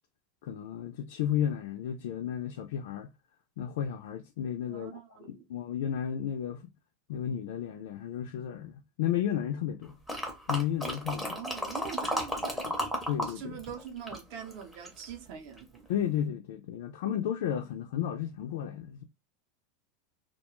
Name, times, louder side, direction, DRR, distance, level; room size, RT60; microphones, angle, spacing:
voice 1, 0.4-3.1 3.6-4.9 5.3-6.7 7.1-10.0 10.5-11.4 12.6-12.7 13.1-13.5 15.9-19.0, left 10 dB, 70° left, 0.3 m, -33 dB
voice 2, 4.7-5.5 11.2-12.9 13.3-15.9, right 7 dB, 45° right, 0.6 m, -44 dB
sound 1, 10.1-13.3 13.6-15.0 15.6-15.7, equal, ahead, 0.6 m, -33 dB
2.3 x 2.2 x 2.9 m
supercardioid pair, 175°, 0 cm